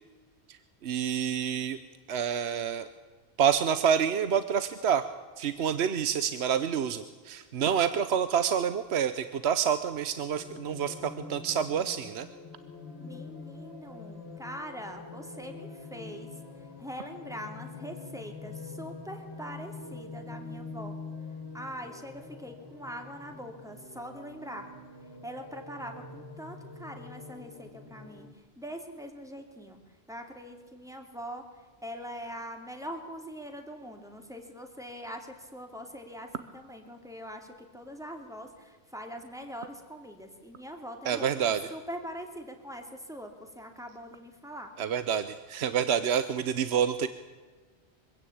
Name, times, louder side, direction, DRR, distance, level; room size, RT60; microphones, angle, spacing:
voice 1, 0.8-1.8 2.1-2.9 3.4-5.1 5.4-12.3 41.1-41.6 44.8-47.1, right 8 dB, 75° right, 12 dB, 1.1 m, -28 dB
sound 1, 10.3-28.3, left 3 dB, 75° left, 2.5 m, -45 dB
voice 2, 13.0-21.0 21.5-24.7 25.2-29.8 30.1-44.7, equal, 5° right, 4 dB, 2.7 m, -43 dB
24.0 x 16.0 x 8.7 m, 1.4 s
omnidirectional pair, 1.1 m